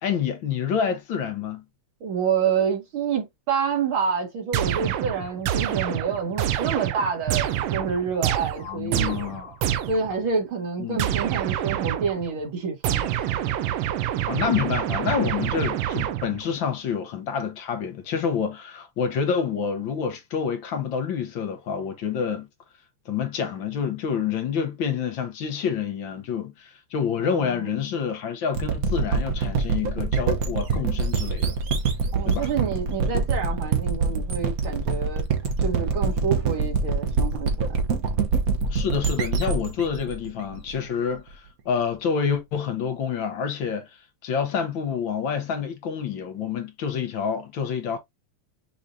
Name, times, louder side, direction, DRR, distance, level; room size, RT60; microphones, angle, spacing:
voice 1, 0.0-1.6 8.6-9.6 10.8-11.0 14.3-22.5 23.1-31.6 32.2-32.5 38.7-43.9 44.2-48.0, left 7 dB, 65° left, 1.6 m, -28 dB
voice 2, 2.0-9.3 9.9-13.1 27.2-27.8 32.1-35.3 35.6-37.5, right 6 dB, 70° right, 2.4 m, -28 dB
sound 1, 4.5-10.2 11.0-12.3 12.8-16.5, right 11 dB, 85° right, 1.6 m, -27 dB
sound 2, 28.5-41.2, right 4 dB, 55° right, 1.1 m, -25 dB
6.2 x 3.2 x 2.7 m
omnidirectional pair, 2.4 m